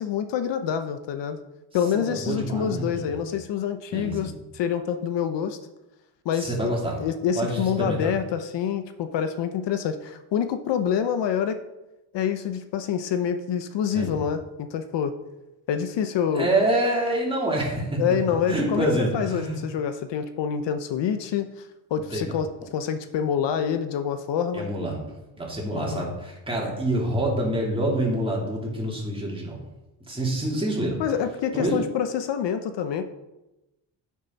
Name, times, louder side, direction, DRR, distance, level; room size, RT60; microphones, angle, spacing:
voice 1, 0.0-1.4 1.7-5.6 6.2-6.7 7.0-11.6 12.1-15.1 15.7-16.5 18.0-18.9 19.1-21.5 21.9-24.7 25.7-26.1 31.0-33.1, left 8 dB, 70° left, 9 dB, 0.9 m, -26 dB
voice 2, 2.1-3.2 3.9-4.3 6.4-7.0 7.4-8.1 13.9-14.2 16.3-18.0 18.5-19.6 22.1-22.3 24.5-25.1 25.4-29.6 30.1-31.0 31.5-31.8, right 1 dB, 10° right, -3 dB, 3.4 m, -26 dB
10.0 x 8.6 x 4.1 m, 0.99 s
cardioid pair, 130°, 44 cm